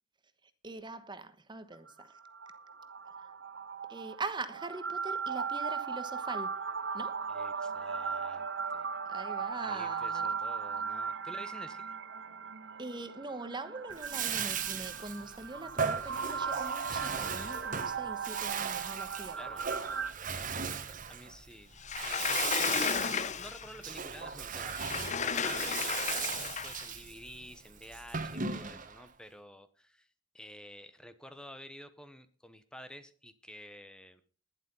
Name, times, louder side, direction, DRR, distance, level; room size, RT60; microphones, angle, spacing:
voice 1, 0.6-2.1 3.2-3.3 3.9-6.5 6.9-7.2 9.1-10.3 12.8-19.5 28.3-28.8, right 3 dB, 25° right, 1.1 m, -42 dB
sound 1, 1.7-20.1, right 5 dB, 65° right, 1.0 m, -37 dB
voice 2, 7.3-8.5 8.7-8.9 9.6-11.9 19.4-19.6 20.3-21.7 22.0-30.1 30.3-34.2, equal, 5° left, 1.0 m, -50 dB
Bathtub (filling or washing), 13.9-29.1, right 6 dB, 45° right, 1.4 m, -37 dB
Sliding door, 21.8-23.8 24.7-26.9, left 7 dB, 40° left, 0.7 m, -33 dB
11.5 x 11.0 x 5.4 m
head